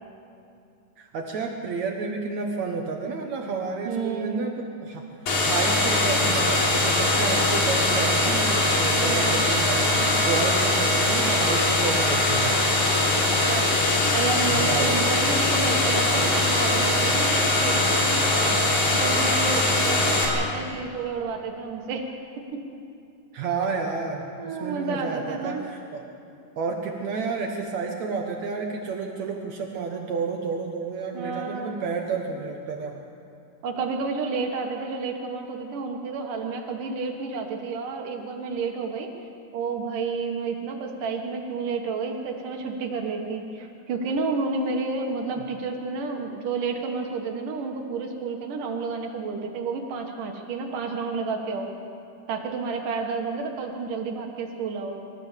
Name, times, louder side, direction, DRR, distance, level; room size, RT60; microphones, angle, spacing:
voice 1, 1.0-5.0 5.4-12.8 14.5-15.0 23.3-26.0 26.6-33.0, right 4 dB, 65° right, 2 dB, 2.4 m, -31 dB
voice 2, 3.8-4.6 9.0-9.4 13.1-18.6 18.9-22.1 22.4-22.6 24.4-25.6 31.1-31.8 33.6-39.1 39.5-51.7 52.3-54.9, right 4 dB, 85° right, 2 dB, 3.1 m, -30 dB
sound 1, 5.3-20.3, left 2 dB, 70° left, 4.3 m, -22 dB
25.0 x 14.5 x 7.4 m, 2.6 s
omnidirectional pair, 3.6 m